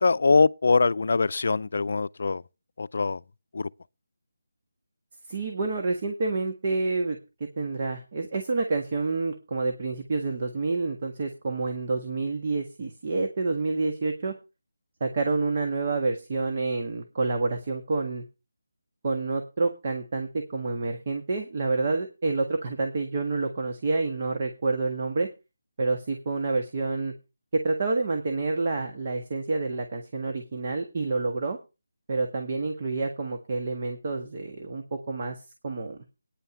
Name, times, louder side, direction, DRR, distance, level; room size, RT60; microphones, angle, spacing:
voice 1, 0.0-2.4 2.8-3.2 3.5-3.7, left 4 dB, 60° left, 0.5 m, -23 dB
voice 2, 5.3-14.3 15.0-18.2 19.0-25.3 25.8-27.1 27.5-31.6 32.1-36.0, right 3 dB, 40° right, 1.6 m, -28 dB
10.0 x 5.6 x 8.2 m
figure-of-eight pair, 165°, 0 cm